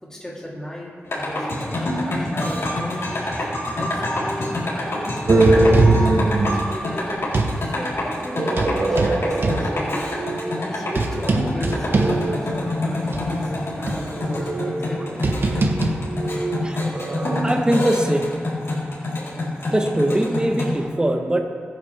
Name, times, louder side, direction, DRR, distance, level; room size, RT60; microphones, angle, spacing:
voice 1, 0.0-3.2 3.7-5.8 6.3-7.2 7.6-10.1 10.6-15.3 16.2-16.3, equal, 15° left, -6 dB, 3.3 m, -35 dB
sound 1, 1.1-20.8, left 1 dB, 75° left, 3.9 m, -27 dB
sound 2, 5.3-7.6 8.3-12.7 13.1-13.2 13.9-17.4, right 2 dB, 55° right, 1.1 m, -21 dB
voice 2, 17.4-18.6 19.7-21.4, right 1 dB, 20° right, 4 dB, 1.2 m, -22 dB
22.5 x 9.7 x 3.5 m, 2.2 s
wide cardioid pair, 120°, 5 cm